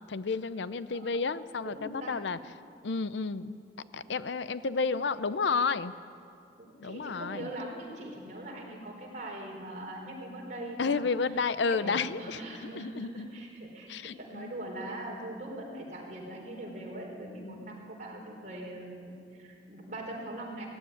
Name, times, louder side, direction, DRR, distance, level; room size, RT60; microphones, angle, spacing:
voice 1, 0.1-2.4 2.8-3.6 3.9-5.9 6.8-7.5 10.8-12.4 12.7-13.3 13.9-14.5 17.4-17.8, left 4 dB, 80° left, 15 dB, 0.6 m, -31 dB
voice 2, 1.6-2.2 4.0-4.1 6.6-11.1 11.7-20.7, right 1 dB, 45° right, -2 dB, 4.2 m, -41 dB
17.0 x 15.5 x 9.9 m, 2.5 s
head